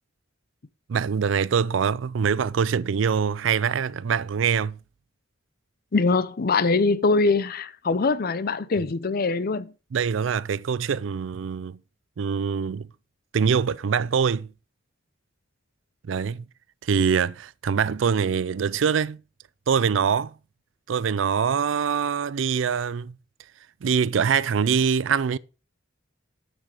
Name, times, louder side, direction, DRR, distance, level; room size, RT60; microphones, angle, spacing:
voice 1, 0.9-4.8 9.9-11.8 12.2-12.9 13.3-14.5 16.0-16.5 16.8-19.2 19.7-20.3 20.9-23.2 23.8-25.4, right 6 dB, 80° right, 0.4 m, -24 dB
voice 2, 5.9-9.7, left 3 dB, 50° left, 0.6 m, -23 dB
9.1 x 6.3 x 4.9 m
head